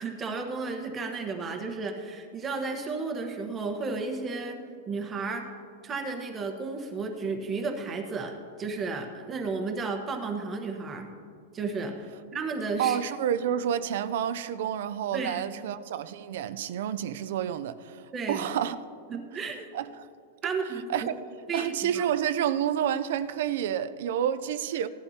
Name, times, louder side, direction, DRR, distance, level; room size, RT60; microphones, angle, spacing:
voice 1, 0.0-4.6 4.9-5.5 5.8-11.1 11.5-11.9 12.3-13.0 15.1-15.6 18.1-18.5 19.1-19.7 20.4-21.1 21.5-22.0, right 4 dB, 20° right, 1.2 m, -33 dB
voice 2, 12.8-18.0 18.3-18.8 19.7-20.1 20.9-21.1 21.5-24.9, right 10 dB, 65° right, 0.5 m, -29 dB
17.5 x 11.5 x 2.9 m
supercardioid pair, 160°, 0 cm